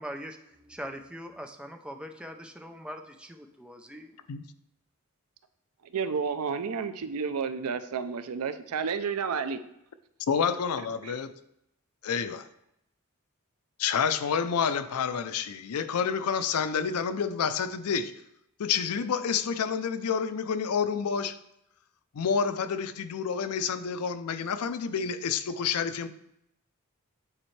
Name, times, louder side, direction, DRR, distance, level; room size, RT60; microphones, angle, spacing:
voice 1, 0.0-4.1, equal, 5° right, 0.4 m, -42 dB
voice 2, 5.9-9.6 11.0-11.1, right 5 dB, 80° right, 0.5 m, -31 dB
voice 3, 10.3-11.3 12.0-12.5 13.8-18.2 18.6-21.4 22.1-26.1, left 6 dB, 85° left, 0.4 m, -29 dB
8.7 x 4.3 x 3.2 m
head